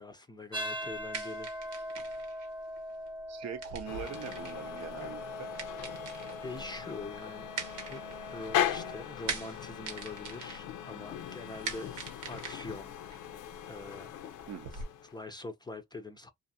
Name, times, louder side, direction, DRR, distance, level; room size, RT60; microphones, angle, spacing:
voice 1, 0.0-1.5 6.4-7.5 7.9-13.0 13.6-14.4 15.0-16.3, left 3 dB, 15° left, 0.4 m, -44 dB
sound 1, 0.5-9.0, equal, 15° right, 0.8 m, -42 dB
sound 2, 0.8-14.8, right 5 dB, 85° right, 0.9 m, -44 dB
voice 2, 3.3-5.5 14.5-14.8, right 8 dB, 60° right, 0.6 m, -42 dB
sound 3, 3.8-15.2, left 10 dB, 80° left, 0.5 m, -39 dB
2.5 x 2.4 x 2.7 m
cardioid pair, 90°, 30 cm